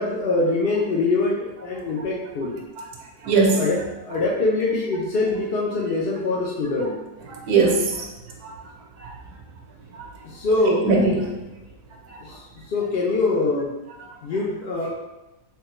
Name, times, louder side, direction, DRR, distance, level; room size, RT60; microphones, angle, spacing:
voice 1, 0.0-2.6 3.6-7.0 10.2-10.9 12.2-12.3 12.7-13.7 14.2-14.9, left 3 dB, 65° left, -3 dB, 0.5 m, -23 dB
voice 2, 3.2-3.8 7.2-8.1 8.4-8.5 9.0-9.1 10.0-10.1 10.6-11.3 12.1-12.2 14.0-14.1, right 3 dB, 85° right, 0 dB, 1.3 m, -21 dB
3.5 x 3.1 x 3.1 m, 1.0 s
omnidirectional pair, 1.6 m